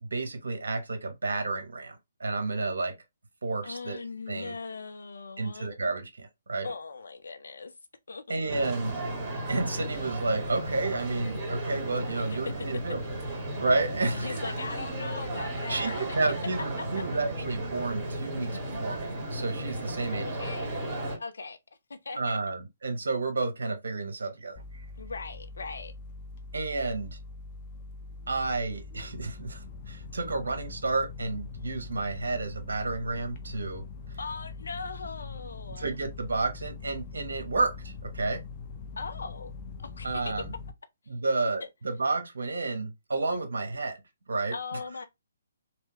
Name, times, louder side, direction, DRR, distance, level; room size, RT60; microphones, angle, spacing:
voice 1, 0.0-2.9 3.4-4.0 4.3-4.5 5.4-6.7 8.3-9.0 9.5-13.0 13.6-14.4 15.7-20.3 22.2-24.8 26.5-27.2 28.3-33.8 35.8-38.4 40.0-40.5 41.1-44.0 44.3-44.8, right 3 dB, 70° right, 1.0 m, -31 dB
voice 2, 3.6-5.7 6.6-7.7 8.1-8.6 12.1-12.5 13.2-13.3 14.1-16.0 16.8-17.0 20.0-20.8 21.2-21.6 21.9-22.4 25.0-25.9 34.2-35.9 39.0-39.5 39.8-40.3 41.6-41.7 44.5-45.1, left 4 dB, 70° left, 0.7 m, -39 dB
sound 1, 8.5-21.2, right 1 dB, 25° right, 2.0 m, -34 dB
sound 2, 24.6-40.7, left 4 dB, 35° left, 0.7 m, -42 dB
3.4 x 3.0 x 3.0 m
figure-of-eight pair, 135°, 0 cm